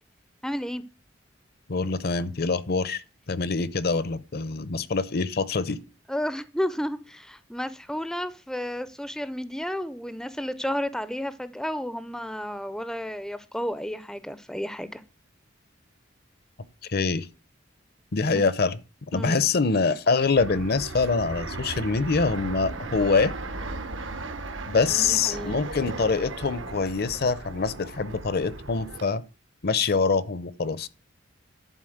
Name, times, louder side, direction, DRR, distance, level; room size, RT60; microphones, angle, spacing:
voice 1, 0.4-0.8 6.1-15.0 18.1-18.4 19.1-19.4 24.9-25.6, equal, 5° left, 0.5 m, -32 dB
voice 2, 1.7-3.0 3.3-5.8 16.9-17.3 18.1-18.8 19.1-23.3 24.7-29.2 29.6-30.9, left 4 dB, 55° left, 0.7 m, -25 dB
Fixed-wing aircraft airplane, 20.4-29.0, right 2 dB, 75° right, 1.1 m, -36 dB
11.0 x 4.3 x 7.8 m
head